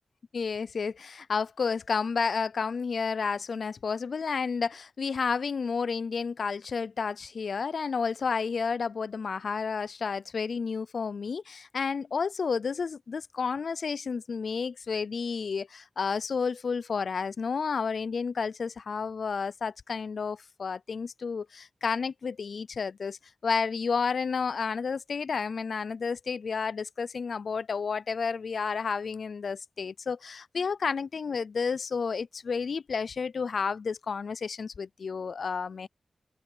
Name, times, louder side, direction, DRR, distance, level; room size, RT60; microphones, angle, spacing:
voice 1, 0.3-35.9, left 5 dB, 80° left, 0.3 m, -31 dB
open air
wide cardioid pair, 90°, 0 cm